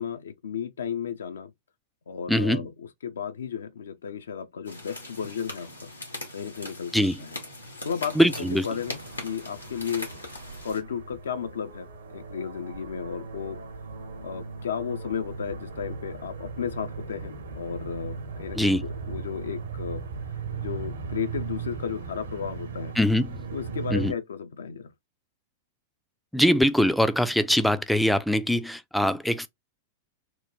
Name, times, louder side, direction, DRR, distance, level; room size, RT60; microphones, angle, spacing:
voice 1, 0.0-1.5 2.1-2.7 3.0-5.9 6.3-7.4 7.8-10.1 10.6-13.6 14.2-20.0 20.6-22.9 23.5-24.9, left 7 dB, 70° left, 0.5 m, -34 dB
voice 2, 2.3-2.7 6.9-7.2 8.2-8.7 18.6-18.8 23.0-23.4 23.9-24.1 26.3-29.5, equal, ahead, 0.3 m, -22 dB
sound 1, 4.6-10.8, left 1 dB, 85° left, 1.4 m, -40 dB
sound 2, 8.8-24.1, right 5 dB, 65° right, 0.8 m, -38 dB
3.1 x 2.2 x 3.8 m
figure-of-eight pair, 95°, 0 cm